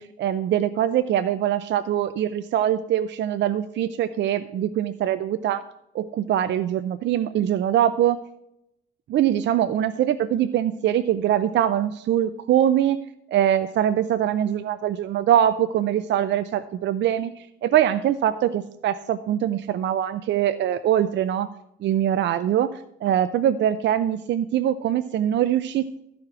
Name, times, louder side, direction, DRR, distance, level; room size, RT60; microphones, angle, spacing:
voice 1, 0.0-5.6 5.9-8.2 9.1-21.5 21.8-26.0, right 10 dB, 65° right, 12 dB, 0.5 m, -23 dB
13.0 x 5.0 x 5.9 m, 0.78 s
cardioid pair, 90°, 20 cm